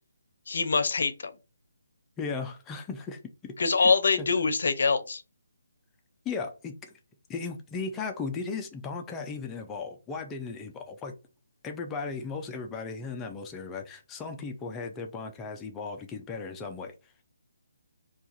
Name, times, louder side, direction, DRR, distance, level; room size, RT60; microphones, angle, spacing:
voice 1, 0.5-1.3 3.6-5.2, left 4 dB, 65° left, 0.6 m, -24 dB
voice 2, 2.2-3.5 3.8-3.9 4.2-4.3 6.2-6.9 7.3-11.2 11.6-16.9, left 4 dB, 15° left, 0.5 m, -36 dB
2.4 x 2.4 x 4.0 m
hypercardioid pair, 160°, 0 cm